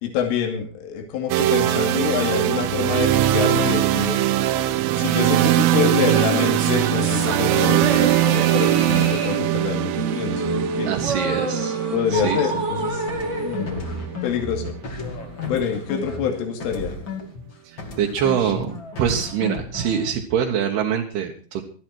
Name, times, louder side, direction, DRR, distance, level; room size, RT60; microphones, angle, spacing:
voice 1, 0.0-4.2 4.9-11.0 11.9-13.1 13.4-13.8 14.2-14.8 15.4-16.9, left 7 dB, 80° left, 3 dB, 4.9 m, -26 dB
sound 1, 1.3-15.2, right 13 dB, 85° right, 3.5 m, -21 dB
sound 2, 6.0-14.6, right 2 dB, 45° right, 0.9 m, -29 dB
voice 2, 10.9-11.8 12.1-12.5 17.6-21.6, right 8 dB, 65° right, 1 dB, 2.8 m, -24 dB
sound 3, 13.1-17.5 17.8-20.1, left 3 dB, 40° left, 1.7 m, -34 dB
20.0 x 13.0 x 4.6 m, 0.41 s
omnidirectional pair, 5.7 m